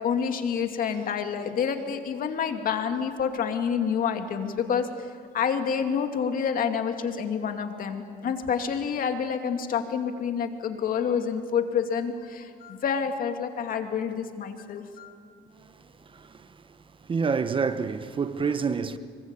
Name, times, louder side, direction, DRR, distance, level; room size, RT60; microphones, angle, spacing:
voice 1, 0.0-4.9 5.3-15.1, left 7 dB, 55° left, 2.6 m, -28 dB
voice 2, 16.1-16.5 17.1-19.0, right 5 dB, 30° right, 1.1 m, -27 dB
26.5 x 23.5 x 8.4 m
cardioid pair, 110°, 17 cm